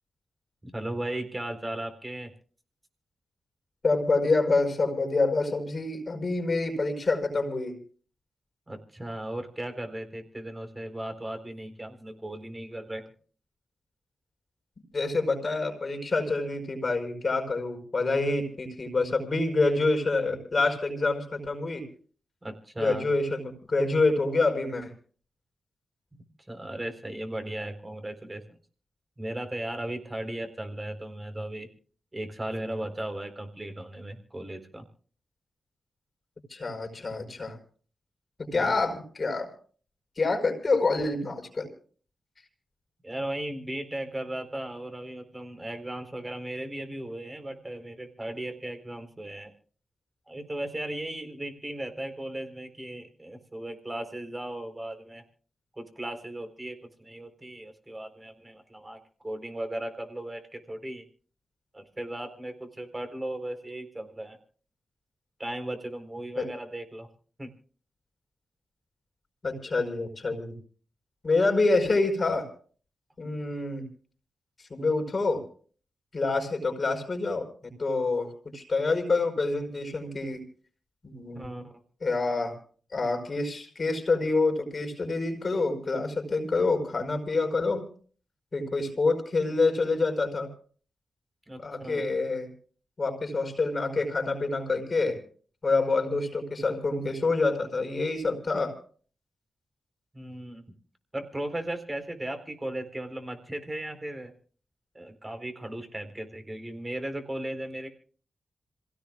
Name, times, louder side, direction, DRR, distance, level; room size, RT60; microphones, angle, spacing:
voice 1, 0.6-2.3 8.7-13.0 22.4-23.1 26.1-28.4 29.2-31.7 32.1-34.9 38.5-38.8 43.0-49.5 50.3-55.2 55.7-61.0 61.7-64.4 65.4-67.1 67.4-67.5 81.3-81.7 91.5-92.1 100.1-100.6 101.1-104.3 104.9-107.9, right 1 dB, 25° right, 6 dB, 4.2 m, -36 dB
voice 2, 3.8-7.8 14.9-21.8 22.8-24.9 36.5-37.6 38.4-39.5 40.2-41.7 66.4-66.5 69.4-70.6 71.2-72.5 73.2-73.9 74.7-75.4 76.1-80.4 81.0-81.6 82.0-82.5 82.9-87.8 88.5-90.5 91.6-92.5 93.0-95.2 95.6-98.7, left 3 dB, 50° left, 3 dB, 4.6 m, -27 dB
27.0 x 17.0 x 2.4 m, 0.43 s
supercardioid pair, 40°, 0 cm